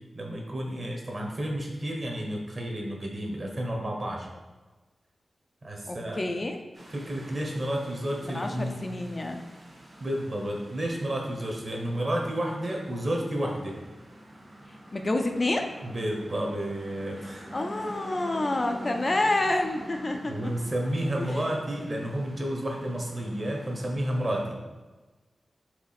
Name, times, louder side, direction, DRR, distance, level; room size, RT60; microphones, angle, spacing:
voice 1, 0.1-4.3 5.6-6.2 6.9-8.8 10.0-13.8 15.8-17.5 20.2-24.6, right 1 dB, 40° right, 0 dB, 1.3 m, -31 dB
voice 2, 5.9-6.6 8.2-9.5 14.9-15.7 17.5-20.3 21.2-21.4, left 2 dB, 30° left, 4 dB, 0.4 m, -28 dB
sound 1, 6.7-24.4, equal, 60° right, 1.8 m, -46 dB
4.8 x 4.0 x 5.8 m, 1.2 s
wide cardioid pair, 135°, 0 cm